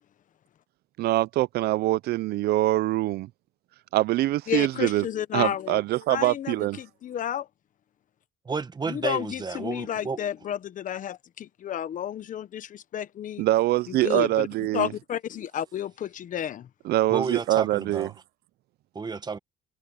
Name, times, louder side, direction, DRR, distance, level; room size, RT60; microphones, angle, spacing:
voice 1, 1.0-3.3 3.9-5.1 5.3-6.8 13.4-14.9 16.9-18.1, right 16 dB, 70° right, 0.5 m, -24 dB
voice 2, 4.5-5.8 6.1-7.5 8.9-13.4 13.9-14.5 14.7-16.7, left 10 dB, 50° left, 1.1 m, -31 dB
voice 3, 8.4-10.2 17.1-18.1 18.9-19.4, right 4 dB, 25° right, 1.5 m, -31 dB
cardioid pair, 110°, 17 cm